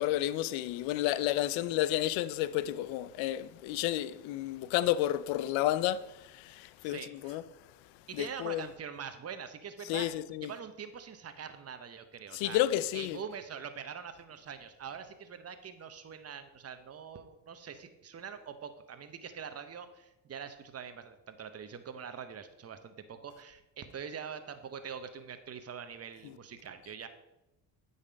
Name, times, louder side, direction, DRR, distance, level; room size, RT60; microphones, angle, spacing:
voice 1, 0.0-7.4 8.1-8.7 9.9-10.5 12.3-13.2, left 13 dB, 80° left, 0.6 m, -31 dB
voice 2, 6.8-7.4 8.1-10.1 10.4-12.6 12.9-27.1, right 7 dB, 30° right, 0.9 m, -44 dB
9.0 x 4.1 x 5.1 m
supercardioid pair, 75°, 46 cm